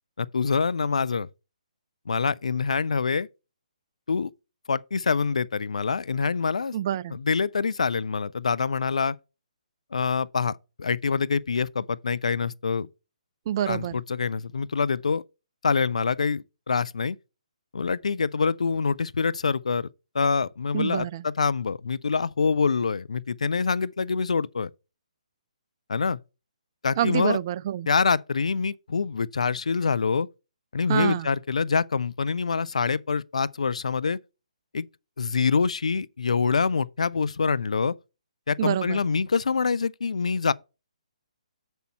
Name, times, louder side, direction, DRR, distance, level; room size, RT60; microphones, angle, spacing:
voice 1, 0.2-1.3 2.1-3.3 4.1-4.3 4.7-6.7 7.1-9.2 9.9-12.9 13.7-15.2 15.6-17.2 17.7-19.9 20.1-24.7 25.9-26.2 26.8-27.4 27.9-30.3 30.7-34.2 34.7-34.9 35.2-37.9 38.5-40.5, left 5 dB, 65° left, 0.4 m, -25 dB
voice 2, 6.7-7.2 13.5-13.9 20.7-21.2 27.0-27.9 30.9-31.3 38.6-39.0, right 11 dB, 30° right, 0.3 m, -27 dB
6.8 x 6.2 x 4.3 m
figure-of-eight pair, 135°, 4 cm